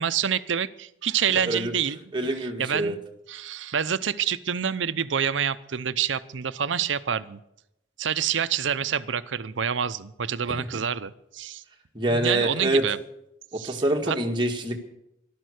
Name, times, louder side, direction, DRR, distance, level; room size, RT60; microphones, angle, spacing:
voice 1, 0.0-2.0 2.4-3.0 3.3-7.4 8.0-11.6 12.1-13.0 13.5-14.2, right 8 dB, 85° right, 14 dB, 0.7 m, -27 dB
voice 2, 2.1-2.9 12.0-12.8 13.6-14.8, right 1 dB, 25° right, 2 dB, 1.8 m, -25 dB
13.5 x 12.5 x 6.4 m, 0.82 s
head